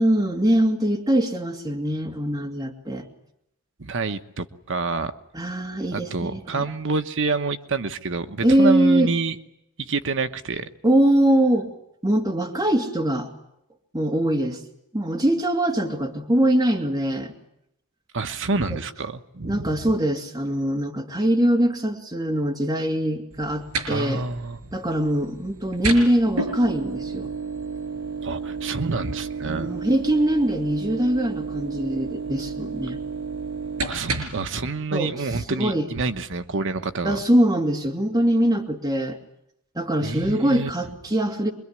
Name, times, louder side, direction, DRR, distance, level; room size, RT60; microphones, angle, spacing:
voice 1, 0.0-3.1 5.3-6.7 8.4-9.1 10.8-11.7 12.0-13.3 13.9-14.6 14.9-17.3 19.4-24.3 24.7-27.3 29.5-33.0 34.9-35.1 35.5-35.9 37.0-39.2 39.7-41.5, right 1 dB, 15° right, 1 dB, 2.6 m, -22 dB
voice 2, 3.8-5.1 5.9-9.4 9.8-10.7 18.1-19.9 23.9-24.6 28.2-29.7 33.9-37.2 40.0-40.7, right 3 dB, 60° right, 9 dB, 1.1 m, -27 dB
sound 1, 23.3-34.5, right 4 dB, 85° right, 5.6 m, -32 dB
25.0 x 23.0 x 9.8 m, 0.78 s
head